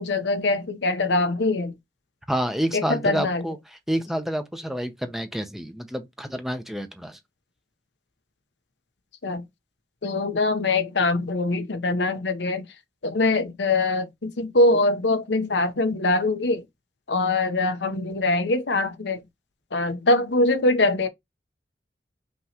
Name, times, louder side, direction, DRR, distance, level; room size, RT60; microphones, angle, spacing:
voice 1, 0.0-1.7 2.7-3.4 9.2-9.4 10.0-12.7 13.0-16.6 17.1-19.2 19.7-21.1, left 2 dB, 75° left, 0.8 m, -23 dB
voice 2, 2.3-3.6 3.9-7.2, equal, ahead, 0.6 m, -28 dB
5.6 x 3.0 x 2.9 m
head